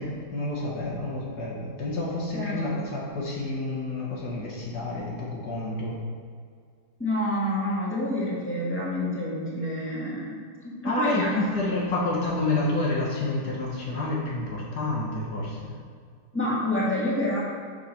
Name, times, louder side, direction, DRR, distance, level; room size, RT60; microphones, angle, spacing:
voice 1, 0.0-6.0 10.8-15.8, left 2 dB, 75° left, -4 dB, 1.7 m, -29 dB
voice 2, 2.3-2.8 7.0-10.4 10.6-12.1 16.3-17.4, left 1 dB, 5° left, -7 dB, 1.7 m, -28 dB
6.4 x 5.7 x 4.2 m, 2.1 s
omnidirectional pair, 1.8 m